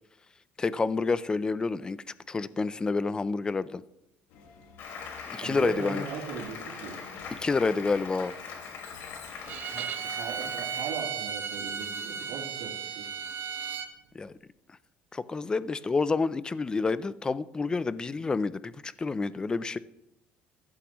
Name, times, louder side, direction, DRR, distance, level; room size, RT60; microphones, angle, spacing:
voice 1, 0.6-3.8 5.3-6.1 7.4-8.3 14.1-14.3 15.1-19.8, left 4 dB, 20° left, 16 dB, 0.5 m, -29 dB
Tramway and Subway (Metro) Ride in Vienna Austria, 4.3-9.6, left 6 dB, 85° left, 1.7 m, -52 dB
Applause, 4.8-10.9, left 5 dB, 60° left, 2.9 m, -42 dB
voice 2, 5.4-7.0 9.6-13.1, right 6 dB, 80° right, -1 dB, 3.3 m, -39 dB
Bowed string instrument, 9.5-13.9, right 7 dB, 55° right, 1.2 m, -35 dB
15.0 x 11.5 x 3.1 m, 0.85 s
cardioid pair, 120°, 4 cm